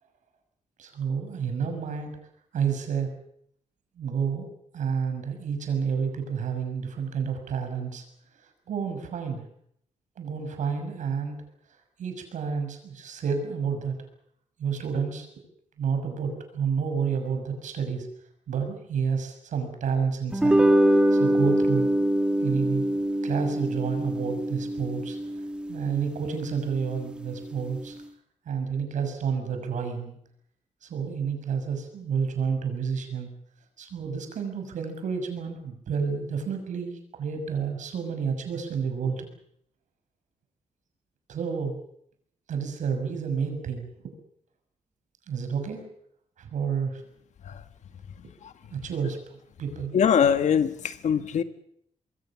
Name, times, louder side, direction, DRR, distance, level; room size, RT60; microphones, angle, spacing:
voice 1, 0.8-2.2 2.5-3.1 4.0-4.5 4.7-8.0 8.7-9.4 10.2-11.3 12.0-14.0 14.6-15.3 15.8-18.1 18.5-20.6 21.1-21.9 22.4-22.8 23.2-25.2 25.7-28.0 28.4-30.2 30.8-33.3 33.8-39.3 41.3-41.8 42.5-44.1 45.3-45.9 46.4-47.0 48.7-49.9, right 6 dB, 85° right, 6 dB, 6.4 m, -30 dB
sound 1, 20.3-26.8, right 1 dB, 10° right, 1.6 m, -24 dB
voice 2, 49.9-51.4, left 7 dB, 70° left, 10 dB, 1.6 m, -23 dB
26.0 x 22.0 x 7.3 m, 0.70 s
wide cardioid pair, 160°, 12 cm